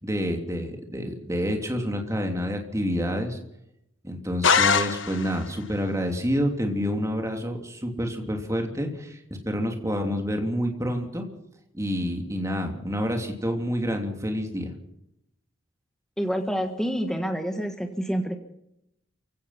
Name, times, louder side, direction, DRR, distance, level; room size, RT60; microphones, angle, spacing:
voice 1, 0.0-3.4 4.0-11.2 11.7-14.7, equal, 15° right, 3 dB, 3.0 m, -28 dB
sound 1, 4.4-5.5, left 6 dB, 75° left, 1.2 m, -22 dB
voice 2, 16.2-18.4, equal, 5° left, 5 dB, 1.5 m, -28 dB
28.5 x 16.5 x 5.9 m, 0.80 s
head